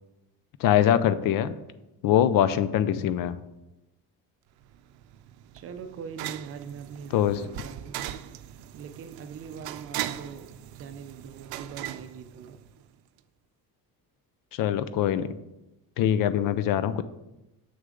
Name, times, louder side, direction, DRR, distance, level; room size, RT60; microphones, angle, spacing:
voice 1, 0.6-1.5 2.0-3.4 7.1-7.5 14.5-15.4 16.0-17.0, left 10 dB, 65° left, 13 dB, 0.5 m, -23 dB
sound 1, 4.6-12.9, right 13 dB, 85° right, 0.5 m, -39 dB
voice 2, 5.5-7.9 8.7-10.5 10.7-12.6, right 6 dB, 40° right, 9 dB, 0.5 m, -42 dB
7.2 x 6.3 x 3.8 m, 0.95 s
cardioid pair, 175°, 36 cm